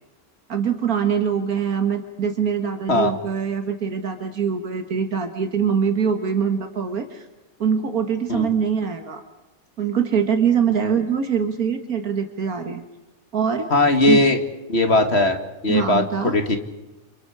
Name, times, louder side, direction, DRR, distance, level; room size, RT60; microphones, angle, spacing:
voice 1, 0.5-7.3 7.6-9.2 9.8-12.8 13.3-13.7 14.1-14.2 15.7-16.4, right 7 dB, 80° right, 6 dB, 2.1 m, -23 dB
voice 2, 13.7-14.4 14.7-15.4 15.6-16.0 16.3-16.6, left 2 dB, 45° left, 6 dB, 2.2 m, -18 dB
29.0 x 29.0 x 4.9 m, 1.0 s
omnidirectional pair, 1.5 m